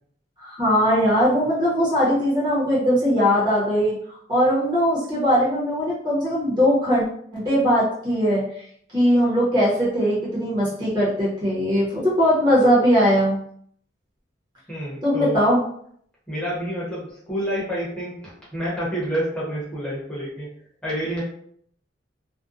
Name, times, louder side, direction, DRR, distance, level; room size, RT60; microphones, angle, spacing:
voice 1, 0.4-7.0 7.3-8.7 8.9-13.4 15.0-15.6, equal, 20° right, -7 dB, 0.8 m, -20 dB
voice 2, 14.7-15.4 16.3-20.5 20.8-21.2, right 1 dB, 5° left, -9 dB, 0.8 m, -28 dB
2.6 x 2.2 x 2.4 m, 0.64 s
head